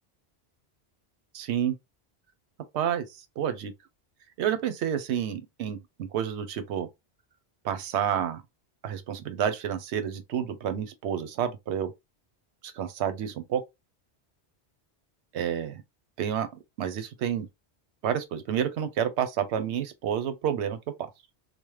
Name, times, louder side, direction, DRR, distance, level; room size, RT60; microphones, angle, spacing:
voice 1, 1.3-1.7 2.7-3.0 3.4-3.7 4.4-6.9 7.6-8.4 8.8-11.9 12.6-13.6 15.3-15.8 16.2-16.5 16.8-17.5 18.0-20.8, right 9 dB, 90° right, 0.9 m, -29 dB
3.0 x 2.0 x 3.1 m
omnidirectional pair, 1.1 m